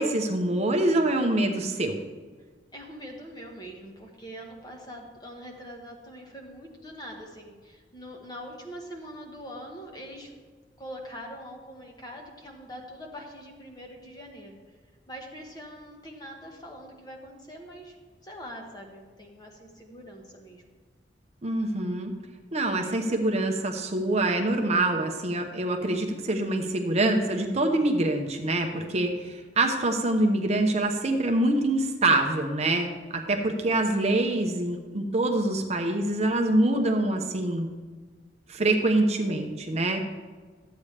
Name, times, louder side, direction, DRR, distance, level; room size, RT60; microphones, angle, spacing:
voice 1, 0.0-2.0 21.4-22.1 22.5-37.7 38.5-40.0, right 2 dB, 40° right, 4 dB, 0.8 m, -25 dB
voice 2, 2.7-10.3 10.8-14.6 15.1-17.9 18.2-20.6, equal, 25° left, 1 dB, 1.4 m, -43 dB
12.5 x 8.4 x 3.3 m, 1.5 s
head